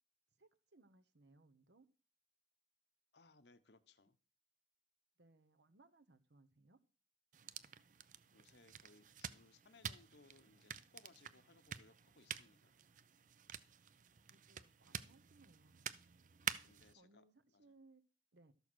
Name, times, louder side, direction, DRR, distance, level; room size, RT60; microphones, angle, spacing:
voice 1, 0.4-1.9 5.2-6.8 14.3-15.8 16.9-18.0 18.3-18.5, right 2 dB, 75° right, 1.2 m, -68 dB
voice 2, 3.1-4.2 8.3-12.8 16.4-17.2 17.5-17.7, left 3 dB, 75° left, 1.0 m, -67 dB
sound 1, 7.3-16.9, right 8 dB, 45° right, 0.6 m, -49 dB
13.0 x 6.9 x 6.3 m
head